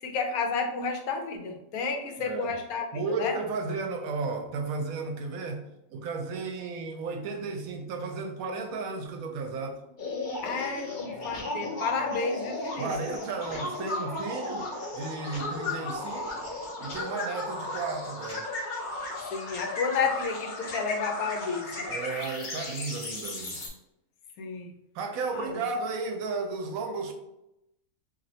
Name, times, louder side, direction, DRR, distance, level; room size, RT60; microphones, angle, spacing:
voice 1, 0.0-3.4 10.4-12.9 19.3-22.0 24.4-24.7 25.3-25.6, left 5 dB, 85° left, 1.1 m, -31 dB
voice 2, 2.2-2.5 2.9-5.6 5.9-9.8 12.8-14.7 14.9-16.4 16.8-18.5 21.9-23.6 24.9-27.1, right 4 dB, 80° right, 1.0 m, -33 dB
sound 1, 10.0-23.7, left 2 dB, 45° left, 0.7 m, -35 dB
3.0 x 2.8 x 2.7 m
omnidirectional pair, 1.5 m